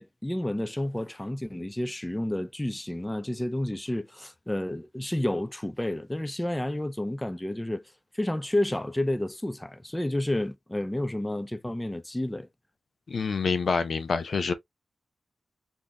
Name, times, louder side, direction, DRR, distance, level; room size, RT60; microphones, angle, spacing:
voice 1, 0.0-7.8 8.1-12.5, left 1 dB, 15° left, 0.5 m, -30 dB
voice 2, 13.1-14.5, left 5 dB, 65° left, 0.6 m, -27 dB
3.4 x 2.7 x 2.9 m
cardioid pair, 45°, 0 cm